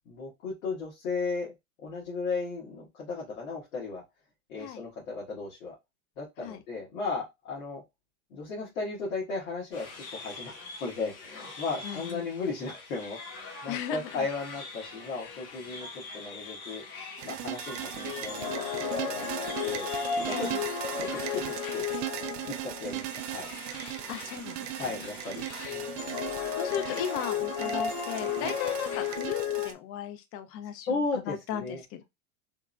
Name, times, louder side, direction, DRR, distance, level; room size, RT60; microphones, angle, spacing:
voice 1, 0.0-1.5 1.8-4.0 4.5-5.7 6.2-7.8 8.3-9.9 10.1-15.9 16.1-16.8 17.2-19.9 20.2-20.5 21.0-21.8 22.5-23.5 24.8-25.9 28.4-28.5 30.9-31.8, left 4 dB, 70° left, 1.6 m, -35 dB
sound 1, 9.7-29.2, left 3 dB, 85° left, 1.2 m, -45 dB
voice 2, 11.8-12.3 13.7-14.3 15.2-15.4 20.3-20.6 24.1-25.0 25.5-25.6 26.5-32.0, left 10 dB, 35° left, 0.5 m, -36 dB
sound 2, 17.2-29.7, right 14 dB, 60° right, 0.5 m, -38 dB
sound 3, 18.0-23.1 25.6-29.7, left 7 dB, 50° left, 0.9 m, -33 dB
3.6 x 2.0 x 2.4 m
hypercardioid pair, 115°, 43 cm